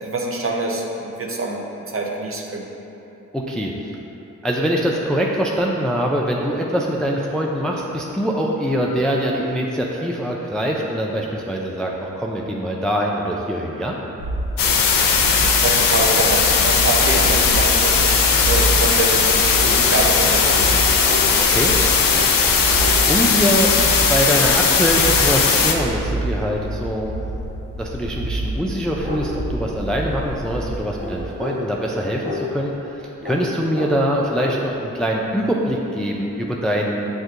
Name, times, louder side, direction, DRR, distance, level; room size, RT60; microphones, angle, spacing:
voice 1, 0.0-2.6 15.6-20.7, right 2 dB, 40° right, -1 dB, 0.7 m, -25 dB
voice 2, 3.3-3.7 4.4-14.0 21.4-21.7 23.1-23.7 24.1-27.4 27.8-37.1, equal, ahead, -1 dB, 0.4 m, -23 dB
sound 1, 14.2-31.2, right 1 dB, 70° left, 0.8 m, -28 dB
sound 2, 14.6-25.7, left 5 dB, 85° left, 0.5 m, -17 dB
sound 3, 19.5-19.7 20.4-20.6 21.0-21.2 22.0-22.3 22.7-23.0 25.0-25.2 28.1-28.2 29.0-29.2 29.5-29.6 30.0-30.4 31.0-31.7 32.2-32.7 33.2-33.5 33.7-34.5, left 1 dB, 25° right, 1.1 m, -30 dB
7.6 x 2.6 x 2.5 m, 2.9 s
cardioid pair, 50°, 33 cm